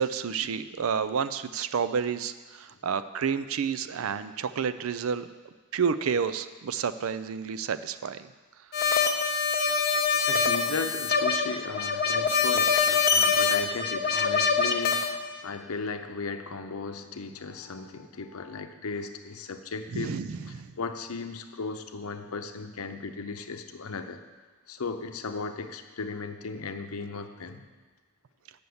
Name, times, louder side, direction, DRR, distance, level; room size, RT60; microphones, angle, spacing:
voice 1, 0.0-5.3 5.7-8.3 19.9-20.7, right 6 dB, 70° right, 13 dB, 0.4 m, -30 dB
sound 1, 8.7-15.1, left 5 dB, 45° left, 0.7 m, -24 dB
voice 2, 10.3-20.1 20.8-24.2 24.7-27.7, left 4 dB, 90° left, 7 dB, 0.7 m, -36 dB
7.0 x 6.8 x 7.8 m, 1.3 s
head